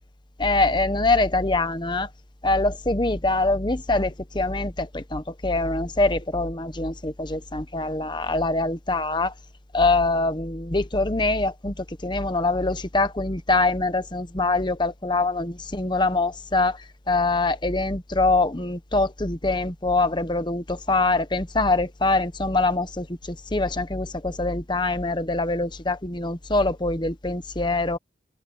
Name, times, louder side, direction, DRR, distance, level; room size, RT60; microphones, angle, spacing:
voice 1, 0.4-2.1 2.4-9.3 9.7-28.0, left 2 dB, 25° left, 1.1 m, -24 dB
open air
head